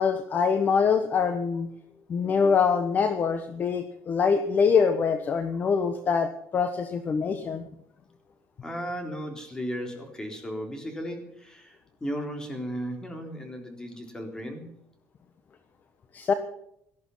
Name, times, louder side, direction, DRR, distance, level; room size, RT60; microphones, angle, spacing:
voice 1, 0.0-1.7 2.1-7.6 16.1-16.3, left 6 dB, 35° left, 9 dB, 1.2 m, -24 dB
voice 2, 8.6-14.7, equal, 15° left, 4 dB, 3.8 m, -35 dB
18.5 x 13.5 x 5.7 m, 0.77 s
cardioid pair, 140°, 5 cm